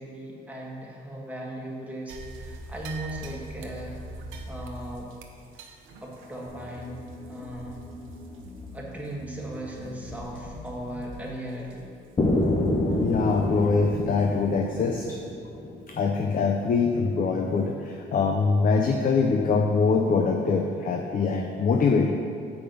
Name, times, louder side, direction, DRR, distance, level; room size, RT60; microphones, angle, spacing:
voice 1, 0.0-5.1 6.0-7.8 8.7-11.9, right 1 dB, 5° right, -3 dB, 1.6 m, -38 dB
sound 1, 2.1-8.7 9.0-9.1 9.7-9.9 10.4-10.7 11.0-11.1 11.7-11.8 14.2-14.3 14.9-15.0, right 2 dB, 90° right, 0.7 m, -43 dB
sound 2, 6.5-11.8, left 1 dB, 80° left, 1.5 m, -43 dB
sound 3, 12.2-16.1, left 1 dB, 25° left, 0.9 m, -27 dB
voice 2, 12.8-15.2 15.9-22.1, left 4 dB, 45° left, 3 dB, 0.6 m, -24 dB
6.9 x 5.0 x 5.3 m, 2.4 s
cardioid pair, 90°, 20 cm